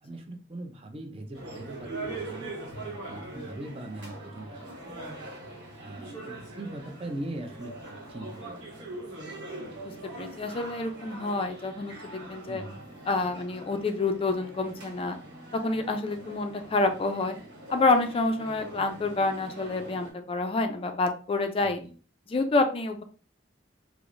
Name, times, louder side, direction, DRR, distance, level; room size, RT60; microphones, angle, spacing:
voice 1, 0.0-2.5 2.8-5.2 5.8-7.7 8.1-9.0 9.7-9.9 12.5-12.8 21.8-21.9, right 1 dB, 30° right, 4 dB, 0.5 m, -41 dB
sound 1, 1.3-20.1, right 2 dB, 70° right, 1.3 m, -42 dB
voice 2, 10.1-12.6 13.1-15.2 15.5-17.4 17.7-21.8 22.3-23.0, left 3 dB, 30° left, 6 dB, 0.4 m, -28 dB
4.6 x 2.0 x 2.5 m, 0.38 s
head